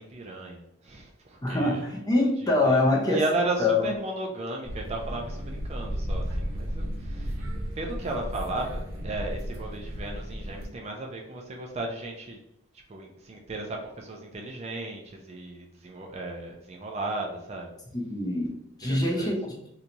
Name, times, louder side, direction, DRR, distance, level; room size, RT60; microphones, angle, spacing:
voice 1, 0.0-1.8 2.4-7.4 7.8-12.4 12.9-17.7 18.8-19.3, right 2 dB, 30° right, 1 dB, 0.4 m, -35 dB
voice 2, 1.4-3.2 3.6-3.9 17.9-19.7, left 2 dB, 20° left, -2 dB, 0.6 m, -25 dB
sound 1, 4.6-10.7, equal, 70° right, 1.0 m, -34 dB
2.9 x 2.3 x 3.8 m, 0.77 s
head